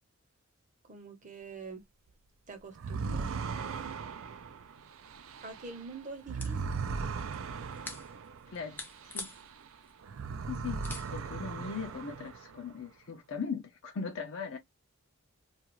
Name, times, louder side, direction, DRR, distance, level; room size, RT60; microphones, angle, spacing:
voice 1, 0.9-1.8 2.5-4.0 5.4-6.8, right 4 dB, 35° right, 0.8 m, -45 dB
sound 1, 2.7-9.7 10.0-12.7, right 5 dB, 65° right, 0.4 m, -38 dB
sound 2, 5.1-12.4, left 2 dB, 10° left, 0.5 m, -49 dB
voice 2, 8.5-8.8 9.1-9.3 10.5-14.6, left 5 dB, 60° left, 0.5 m, -39 dB
2.4 x 2.4 x 2.9 m
head